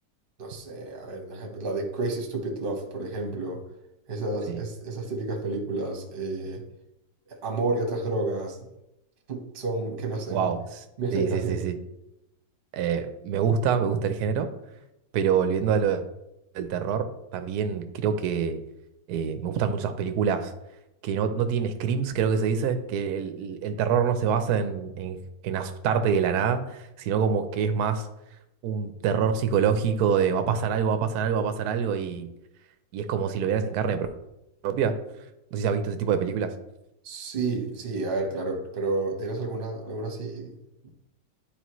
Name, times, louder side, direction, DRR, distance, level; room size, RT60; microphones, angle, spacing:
voice 1, 0.4-3.6 4.1-6.6 7.3-8.7 9.3-10.5 11.0-11.6 37.0-40.5 40.8-40.9, right 2 dB, 35° right, 3 dB, 0.9 m, -30 dB
voice 2, 10.3-10.8 11.1-11.8 12.7-14.5 15.1-16.0 16.5-18.6 19.1-20.5 21.0-28.1 28.6-32.3 32.9-34.1 34.6-34.9 35.5-36.5, right 7 dB, 65° right, 8 dB, 0.9 m, -26 dB
10.0 x 4.4 x 3.1 m, 0.89 s
omnidirectional pair, 2.2 m